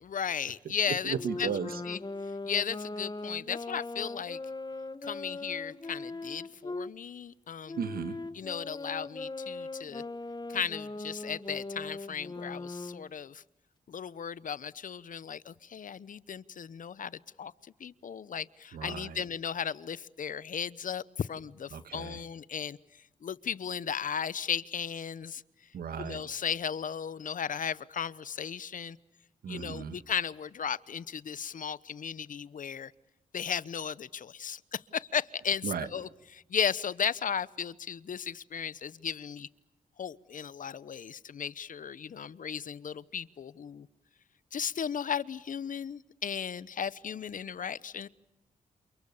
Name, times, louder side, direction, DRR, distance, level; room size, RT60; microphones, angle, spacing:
voice 1, 0.0-1.5 1.9-2.0 2.5-4.4 5.0-7.8 8.3-10.0 10.5-13.4 13.9-22.8 23.2-25.4 26.0-29.0 29.5-32.9 33.3-39.5 40.0-43.9 44.5-48.1, left 7 dB, 60° left, 19 dB, 0.9 m, -35 dB
voice 2, 1.0-1.8 7.8-8.2 18.7-19.2 21.7-22.2 25.7-26.2 29.4-30.0 35.6-35.9, right 7 dB, 80° right, 11 dB, 1.8 m, -35 dB
Wind instrument woodwind instrument, 1.1-6.9 7.7-13.1, left 3 dB, 30° left, 1.6 m, -39 dB
28.5 x 28.5 x 7.1 m, 0.90 s
cardioid pair, 60°, 15 cm